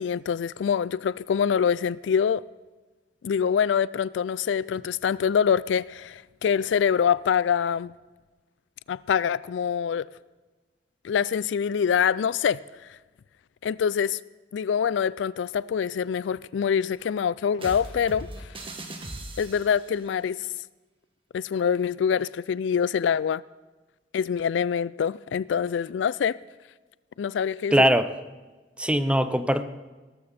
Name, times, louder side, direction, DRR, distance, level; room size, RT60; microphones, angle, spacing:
voice 1, 0.0-2.4 3.2-7.9 8.9-10.1 11.0-12.6 13.6-14.2 14.5-18.3 19.4-20.4 21.3-23.4 24.1-26.4 27.2-27.9, left 7 dB, 75° left, 20 dB, 0.3 m, -25 dB
sound 1, 17.6-19.9, right 1 dB, 30° right, 1.9 m, -39 dB
voice 2, 27.7-28.1 28.8-29.6, equal, 5° right, 12 dB, 0.6 m, -21 dB
17.5 x 13.5 x 4.3 m, 1.2 s
head